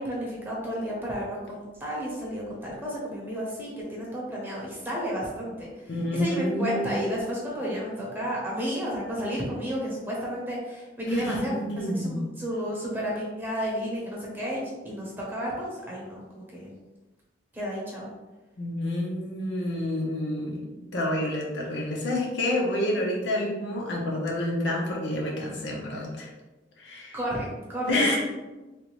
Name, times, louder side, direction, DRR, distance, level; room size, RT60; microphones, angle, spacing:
voice 1, 0.0-5.7 6.1-16.8 17.5-18.1 27.1-28.2, equal, 10° right, -5 dB, 0.8 m, -32 dB
voice 2, 5.9-7.1 11.1-12.2 18.6-26.3 26.8-27.2 27.9-28.2, left 1 dB, 70° left, -2 dB, 0.8 m, -28 dB
3.2 x 2.5 x 3.1 m, 1.1 s
head